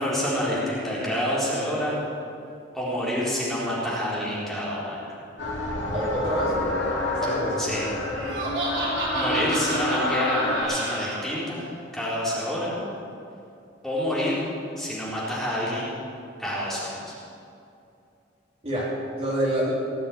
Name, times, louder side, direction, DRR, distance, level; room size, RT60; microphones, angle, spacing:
voice 1, 0.0-2.0 2.7-5.2 7.6-7.8 9.1-12.7 13.8-14.4 14.8-15.9 16.4-17.1, equal, ahead, -9 dB, 3.8 m, -28 dB
sound 1, 5.4-10.6, left 1 dB, 75° left, 3.3 m, -28 dB
voice 2, 5.9-6.8 7.2-7.7 18.6-19.7, equal, 35° right, -7 dB, 4.1 m, -27 dB
Laughter, 8.1-11.2, right 2 dB, 70° right, 3.8 m, -31 dB
18.5 x 7.5 x 8.8 m, 2.6 s
head